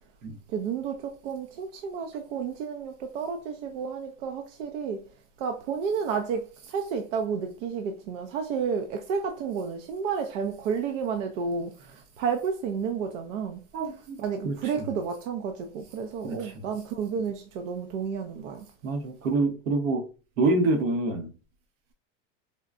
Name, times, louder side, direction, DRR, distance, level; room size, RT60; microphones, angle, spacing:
voice 1, 0.5-5.0 5.4-13.6 14.2-18.7, right 6 dB, 75° right, 0.6 m, -31 dB
voice 2, 13.7-14.2 14.4-14.6 16.2-16.5 18.8-20.1 20.4-21.3, right 2 dB, 90° right, 1.0 m, -26 dB
3.9 x 2.1 x 2.4 m
supercardioid pair, 130°, 38 cm